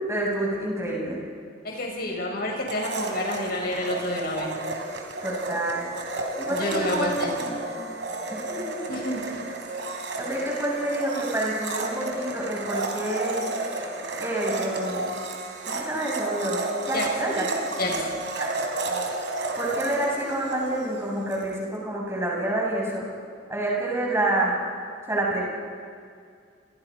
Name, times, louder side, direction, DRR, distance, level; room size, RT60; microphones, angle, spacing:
voice 1, 0.1-1.2 5.2-5.9 6.4-7.7 8.3-8.8 9.8-13.5 14.2-15.0 15.6-17.5 17.8-18.0 18.4-18.5 19.6-23.1 23.5-24.6 25.1-25.5, right 1 dB, 15° right, -4 dB, 7.2 m, -28 dB
voice 2, 1.6-4.5 6.5-7.3 8.9-9.3 16.9-17.1 17.8-18.1, left 1 dB, 55° left, 0 dB, 6.4 m, -29 dB
Domestic sounds home sounds, 2.7-21.5, right 2 dB, 80° right, 3.3 m, -32 dB
29.0 x 27.5 x 5.3 m, 2.2 s
head